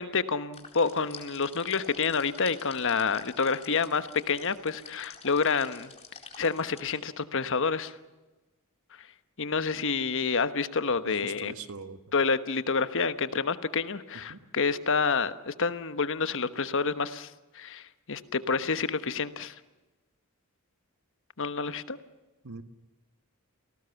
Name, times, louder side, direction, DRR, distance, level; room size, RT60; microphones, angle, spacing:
voice 1, 0.0-5.9 6.4-7.9 9.4-11.5 12.1-17.3 17.5-19.5 21.4-22.0, left 5 dB, 60° left, 11 dB, 1.2 m, -28 dB
sound 1, 0.5-6.9, left 5 dB, 30° left, 4.1 m, -49 dB
voice 2, 11.0-12.0 14.3-14.4 22.4-22.6, right 4 dB, 85° right, 10 dB, 1.5 m, -42 dB
28.5 x 18.5 x 7.1 m, 1.1 s
head